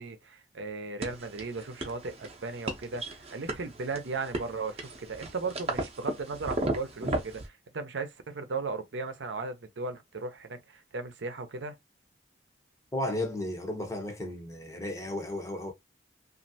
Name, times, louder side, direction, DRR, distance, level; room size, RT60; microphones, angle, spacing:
voice 1, 0.0-7.4 7.7-10.6 10.9-11.8, right 3 dB, 80° right, 0.6 m, -36 dB
sound 1, 1.0-7.5, right 2 dB, 35° right, 0.7 m, -35 dB
voice 2, 12.9-15.7, left 1 dB, 15° left, 0.7 m, -34 dB
3.1 x 2.5 x 2.7 m
head